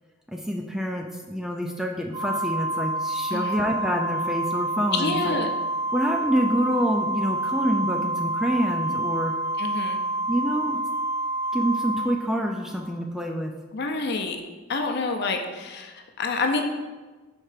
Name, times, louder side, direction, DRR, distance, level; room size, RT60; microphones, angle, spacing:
voice 1, 0.3-5.4 5.9-9.3 10.3-10.8 11.5-13.5, equal, ahead, 2 dB, 0.3 m, -27 dB
Organ, 2.1-12.9, right 2 dB, 20° right, 0.7 m, -28 dB
voice 2, 4.9-5.5 9.6-10.0 13.7-14.4 14.7-16.6, left 3 dB, 55° left, 4 dB, 0.6 m, -28 dB
4.4 x 4.4 x 5.0 m, 1.3 s
head